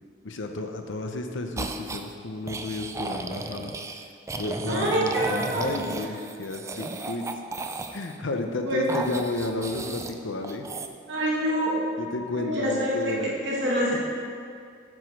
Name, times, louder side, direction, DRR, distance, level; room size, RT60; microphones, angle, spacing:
voice 1, 0.2-3.7 4.4-7.2 7.9-10.7 12.0-13.3, left 2 dB, 65° left, 5 dB, 0.7 m, -32 dB
sound 1, 1.6-2.1 2.5-8.2 8.9-10.2 10.4-10.9, right 3 dB, 15° right, 0.3 m, -34 dB
voice 2, 4.7-5.8 8.6-8.9 11.1-11.8 12.3-14.1, equal, 65° right, -5 dB, 2.1 m, -26 dB
7.6 x 4.9 x 6.2 m, 2.3 s
head